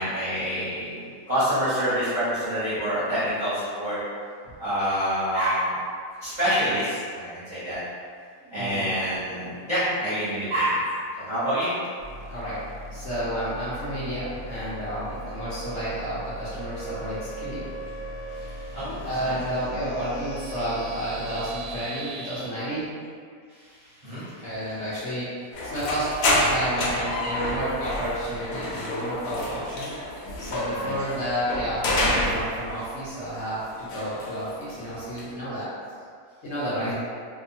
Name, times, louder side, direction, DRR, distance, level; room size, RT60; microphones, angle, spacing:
voice 1, 0.0-4.0 4.6-5.7 6.2-7.8 8.5-10.9 11.2-11.7 18.3-19.4 23.6-24.3 30.8-30.9 36.7-36.9, equal, 40° right, -14 dB, 0.8 m, -27 dB
voice 2, 8.4-8.9 12.3-12.6 12.9-17.6 19.0-22.9 24.4-29.9 30.4-35.7 36.4-36.9, equal, 60° left, -11 dB, 0.8 m, -31 dB
sound 1, 12.0-22.4, right 1 dB, 70° right, 1.0 m, -38 dB
sound 2, 25.5-33.0 33.2-35.3, left 1 dB, 80° left, 1.1 m, -28 dB
2.8 x 2.2 x 2.6 m, 2.1 s
omnidirectional pair, 1.7 m